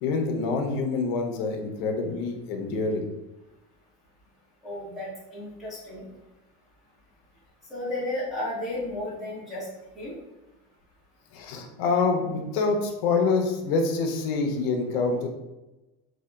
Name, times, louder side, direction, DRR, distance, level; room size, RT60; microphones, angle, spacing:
voice 1, 0.0-3.1 11.3-15.3, left 4 dB, 70° left, 3 dB, 0.5 m, -26 dB
voice 2, 4.6-6.0 7.7-9.7 9.9-10.1, left 1 dB, ahead, -11 dB, 0.7 m, -33 dB
2.7 x 2.2 x 2.2 m, 1.0 s
cardioid pair, 165°, 31 cm